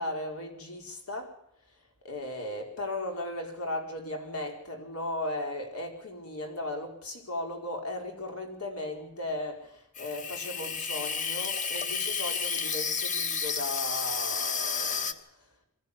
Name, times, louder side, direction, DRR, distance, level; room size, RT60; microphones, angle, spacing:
voice 1, 0.0-1.4 2.0-15.3, left 1 dB, 80° left, 4.8 m, -36 dB
Water tap faucet / Sink (filling or washing), 10.0-15.1, left 6 dB, 35° left, 1.2 m, -31 dB
23.5 x 14.0 x 8.5 m
head